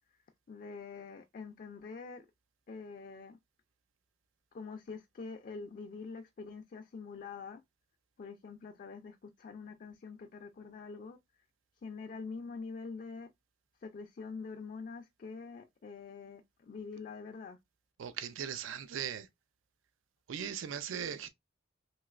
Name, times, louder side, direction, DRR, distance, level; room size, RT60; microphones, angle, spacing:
voice 1, 0.5-2.3 2.7-3.4 4.5-7.6 8.2-11.2 11.8-13.3 13.8-17.6, left 4 dB, 45° left, 0.3 m, -45 dB
voice 2, 18.0-19.3 20.3-21.3, right 8 dB, 85° right, 0.4 m, -39 dB
3.0 x 2.9 x 2.3 m
head